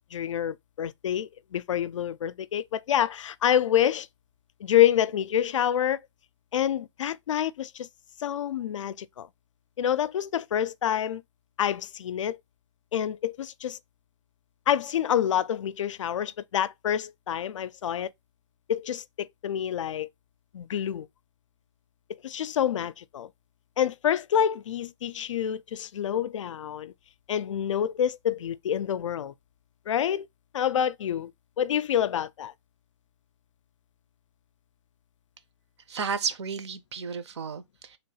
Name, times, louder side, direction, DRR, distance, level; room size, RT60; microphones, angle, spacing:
voice 1, 0.1-4.1 4.6-6.0 6.5-7.9 8.2-9.3 9.8-11.2 11.6-12.4 12.9-13.8 14.7-18.1 18.7-20.1 20.5-21.1 22.1-23.3 23.8-26.9 27.3-29.3 29.9-30.3 30.5-31.3 31.6-32.5, left 10 dB, 85° left, 0.4 m, -27 dB
voice 2, 35.9-38.0, right 6 dB, 65° right, 0.7 m, -33 dB
3.4 x 2.3 x 3.9 m
hypercardioid pair, 170°, 16 cm